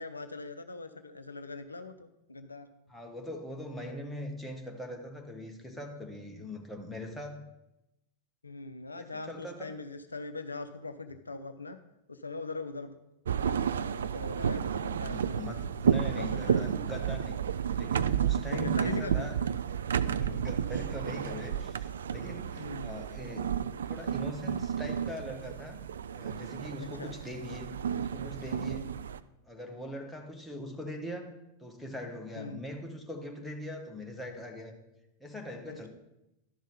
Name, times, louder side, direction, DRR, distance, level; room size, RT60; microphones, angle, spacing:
voice 1, 0.0-2.7 8.4-11.8 12.1-13.0 13.3-15.5 16.0-16.7 18.5-19.3 20.2-20.4 21.5-21.7 22.5-22.9 26.8-27.1 32.4-32.6 35.6-35.9, left 3 dB, 80° left, 9 dB, 0.5 m, -41 dB
voice 2, 2.9-7.4 9.0-9.7 14.8-17.4 17.7-19.4 20.0-25.8 26.1-28.9 29.4-31.3 31.6-34.8 35.2-35.9, left 1 dB, 5° left, 1 dB, 1.5 m, -41 dB
sound 1, 13.2-29.2, right 8 dB, 65° right, 0.3 m, -32 dB
11.5 x 5.4 x 5.2 m, 0.91 s
figure-of-eight pair, 90°, 0 cm